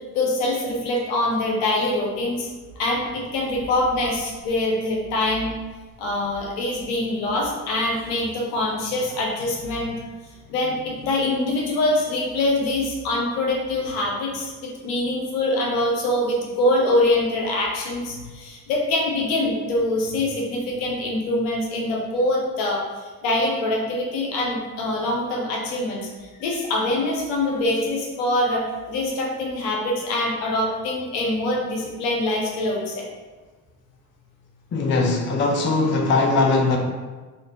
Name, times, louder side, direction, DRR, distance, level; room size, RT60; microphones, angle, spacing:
voice 1, 0.1-2.5 2.8-5.5 6.0-10.0 10.5-33.0, left 1 dB, 75° left, -2 dB, 0.8 m, -24 dB
voice 2, 34.7-36.8, left 3 dB, 25° left, 1 dB, 0.5 m, -20 dB
3.2 x 2.4 x 2.8 m, 1.3 s
hypercardioid pair, 50°, 48 cm